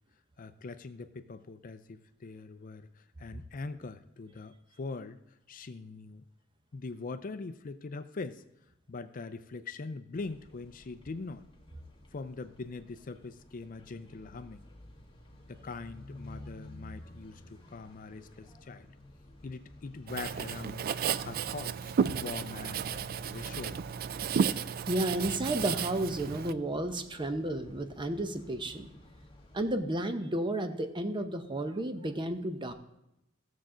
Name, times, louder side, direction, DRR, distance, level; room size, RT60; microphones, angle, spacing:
voice 1, 0.4-5.2 5.5-6.2 6.7-8.4 8.9-11.5 12.1-14.7 15.5-18.9 19.4-23.8 27.2-27.3, left 3 dB, 40° left, 11 dB, 0.5 m, -42 dB
sound 1, 10.1-29.7, left 1 dB, 25° left, 1.7 m, -53 dB
Writing, 20.1-26.5, right 7 dB, 45° right, 0.3 m, -33 dB
voice 2, 24.9-28.9 29.5-32.7, right 1 dB, 25° right, 8 dB, 0.7 m, -32 dB
16.0 x 7.3 x 3.8 m, 0.86 s
head